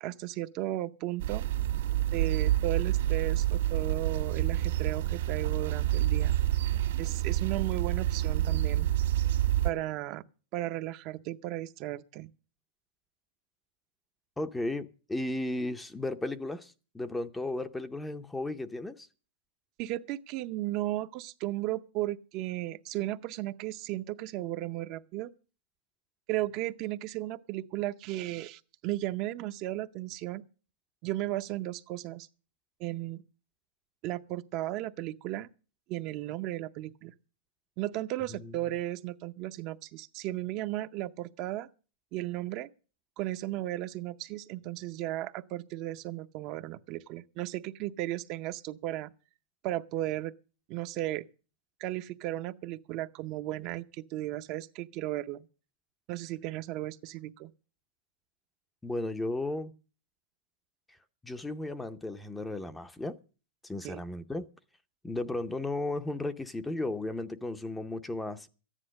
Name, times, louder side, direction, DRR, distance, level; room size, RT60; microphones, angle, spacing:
voice 1, 0.0-1.4 2.1-6.4 7.0-8.9 9.6-10.2 10.5-12.3 19.8-25.3 26.3-30.4 31.0-32.3 32.8-33.2 34.0-35.5 35.9-37.1 37.8-41.7 42.1-42.7 43.2-49.1 49.6-50.3 50.7-51.2 51.8-55.5 56.1-57.5 63.8-64.0, right 15 dB, 40° right, 0.6 m, -35 dB
sound 1, 1.2-9.7, right 13 dB, 65° right, 1.7 m, -28 dB
voice 2, 14.4-19.1 38.3-38.5 58.8-59.7 61.2-63.2 63.6-64.5 65.0-68.5, left 2 dB, 5° left, 0.6 m, -35 dB
13.5 x 9.9 x 6.3 m
supercardioid pair, 155°, 0 cm